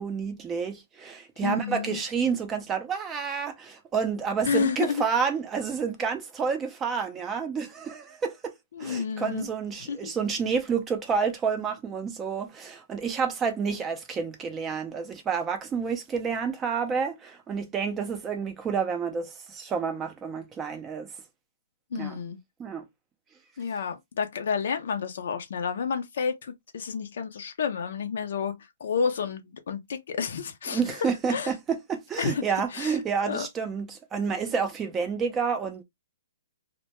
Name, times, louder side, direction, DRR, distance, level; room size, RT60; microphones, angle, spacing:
voice 1, 0.0-8.5 8.8-21.1 21.9-22.2 22.6-22.9 30.7-35.8, right 6 dB, 15° right, 0.4 m, -29 dB
voice 2, 1.4-2.0 4.4-5.0 8.7-9.5 9.9-10.1 21.9-22.4 23.6-31.5 32.2-32.4 32.7-32.9 33.3-33.5, left 6 dB, 65° left, 0.4 m, -30 dB
2.1 x 2.1 x 2.8 m
hypercardioid pair, 160°, 0 cm